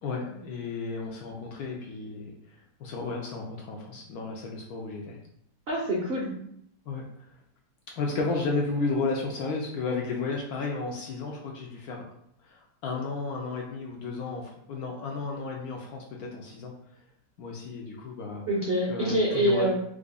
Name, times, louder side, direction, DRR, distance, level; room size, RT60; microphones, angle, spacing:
voice 1, 0.0-5.2 6.9-7.0 8.0-12.0 12.4-16.7 17.4-18.4 18.9-19.7, left 3 dB, 70° left, -1 dB, 1.0 m, -33 dB
voice 2, 5.7-6.3 18.5-19.7, right 1 dB, 80° right, -3 dB, 0.5 m, -25 dB
4.7 x 2.5 x 2.2 m, 0.70 s
omnidirectional pair, 1.9 m